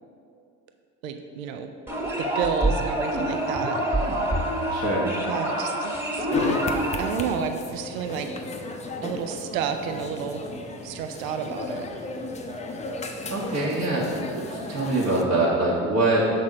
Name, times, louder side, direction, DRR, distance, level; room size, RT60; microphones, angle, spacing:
voice 1, 1.0-1.7 2.2-4.2 5.3-6.3 7.0-8.3 9.0-10.4 10.8-11.9, right 7 dB, 80° right, 7 dB, 0.5 m, -31 dB
sound 1, 1.9-7.2, right 1 dB, 5° right, 1.4 m, -27 dB
voice 2, 4.7-5.1 13.3-16.3, right 2 dB, 40° right, -6 dB, 1.2 m, -24 dB
sound 2, 6.3-15.2, left 3 dB, 15° left, 0.6 m, -33 dB
6.5 x 4.0 x 4.8 m, 2.5 s
hypercardioid pair, 65°, 40 cm